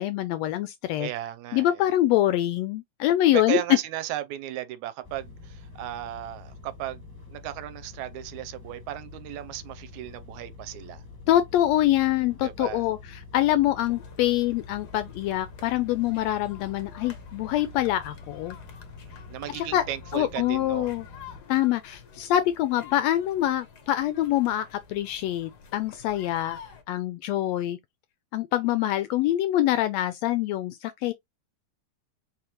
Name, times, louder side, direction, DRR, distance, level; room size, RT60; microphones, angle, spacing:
voice 1, 0.0-1.1 1.5-3.6 11.3-18.6 19.6-19.8 20.1-21.1 21.5-26.6 26.9-27.8 28.3-31.1, left 13 dB, 80° left, 1.5 m, -25 dB
voice 2, 1.0-1.8 3.3-11.0 12.4-12.9 19.1-20.9, right 13 dB, 80° right, 1.9 m, -35 dB
sound 1, 5.0-21.4, left 4 dB, 10° left, 1.2 m, -46 dB
sound 2, 13.8-26.8, left 6 dB, 55° left, 1.1 m, -49 dB
4.9 x 3.5 x 2.9 m
omnidirectional pair, 3.4 m